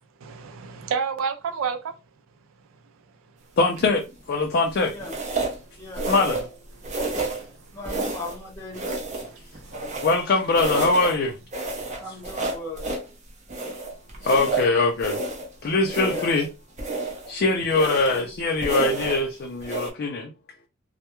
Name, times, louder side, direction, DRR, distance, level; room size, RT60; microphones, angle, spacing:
voice 1, 0.2-1.9 6.9-7.5 9.2-10.1 11.8-12.1, right 6 dB, 80° right, 0.4 m, -32 dB
voice 2, 3.6-4.0 4.3-4.9 6.1-6.5 10.0-11.4 14.2-15.2 15.6-16.5 17.3-20.3, left 3 dB, 50° left, 0.4 m, -22 dB
sound 1, 3.8-4.1 5.0-5.6 5.9-6.6 6.8-7.5 7.8-8.4 8.7-10.3 10.5-11.2 11.5-13.1 13.5-15.5 15.8-16.5 16.8-17.3 17.7-18.3 18.6-19.2 19.6-19.9, right 2 dB, 35° right, 0.6 m, -30 dB
voice 3, 5.8-6.1 7.7-8.9 12.0-13.0 16.1-16.4 17.7-18.2, left 2 dB, 15° left, 0.8 m, -37 dB
2.2 x 2.1 x 2.9 m
head